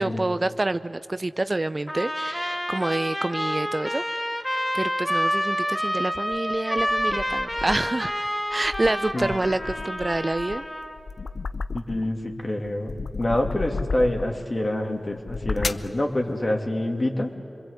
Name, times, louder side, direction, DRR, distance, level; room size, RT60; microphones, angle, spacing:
voice 1, 0.0-4.0 4.7-8.1 8.5-10.6, right 2 dB, 40° right, 12 dB, 0.5 m, -27 dB
Trumpet, 1.9-11.0, equal, 15° left, 1.8 m, -28 dB
sound 1, 6.1-8.0 8.5-12.3 12.6-14.5 15.1-16.0, left 4 dB, 70° left, 0.6 m, -34 dB
voice 2, 11.7-17.3, left 1 dB, 45° left, 2 dB, 2.7 m, -26 dB
26.5 x 22.0 x 8.2 m, 2.3 s
cardioid pair, 40°, 0 cm